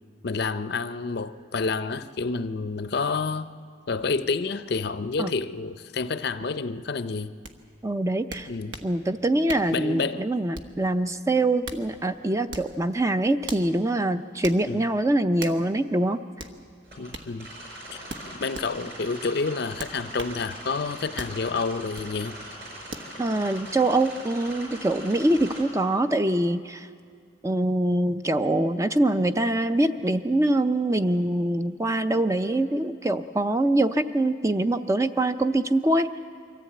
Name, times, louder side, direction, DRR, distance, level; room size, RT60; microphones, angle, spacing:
voice 1, 0.2-3.5 3.9-7.3 8.5-8.8 9.7-10.2 14.7-14.8 17.0-17.5 17.9-22.3, left 4 dB, 55° left, 13 dB, 0.5 m, -29 dB
sound 1, 7.4-7.6 8.3-8.9 9.5-9.8 10.5-10.8 11.4-11.9 12.5-12.8 13.5-13.7 14.4-14.6 15.4-15.6 16.4-16.6 17.1-17.3 18.1-18.7 19.8-20.4 21.2-21.4 21.9-22.1 22.9-23.1, right 2 dB, 70° right, 1.2 m, -38 dB
voice 2, 7.8-8.5 8.8-16.2 23.2-26.9 27.4-36.1, right 1 dB, 15° right, 10 dB, 0.5 m, -24 dB
sound 2, 16.8-25.6, right 1 dB, 50° right, 5.3 m, -41 dB
23.5 x 14.5 x 8.6 m, 2.2 s
head